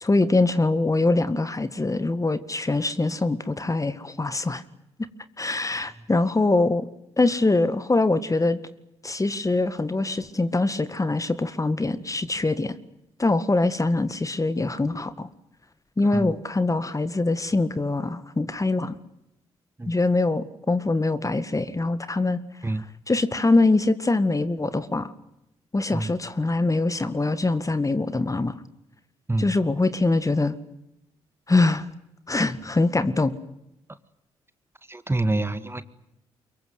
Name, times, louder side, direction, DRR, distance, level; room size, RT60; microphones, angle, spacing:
voice 1, 0.0-4.6 5.4-6.9 7.2-8.6 9.0-12.7 13.2-15.3 16.0-19.0 19.9-22.4 22.7-25.1 25.7-28.6 29.4-30.5 31.5-31.9 32.3-33.3, left 2 dB, 25° left, 13 dB, 1.9 m, -23 dB
voice 2, 34.9-35.8, right 2 dB, 20° right, 13 dB, 1.9 m, -26 dB
24.0 x 22.5 x 9.4 m, 0.83 s
hypercardioid pair, 40°, 13 cm